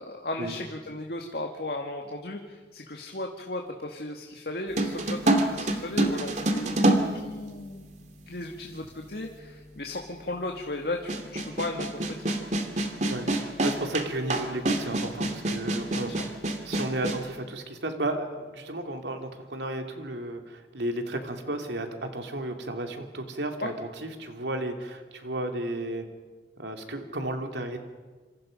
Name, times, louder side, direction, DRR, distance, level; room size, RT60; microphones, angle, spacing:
voice 1, 0.0-12.4 23.6-23.7, left 2 dB, 60° left, 2 dB, 1.9 m, -36 dB
sound 1, 4.8-7.9 8.8-8.9 11.1-17.2, right 1 dB, 40° right, 2.3 m, -26 dB
voice 2, 13.1-16.4 16.6-26.0 26.6-27.8, right 1 dB, 85° right, 4 dB, 2.8 m, -33 dB
27.5 x 27.0 x 5.3 m, 1.3 s
head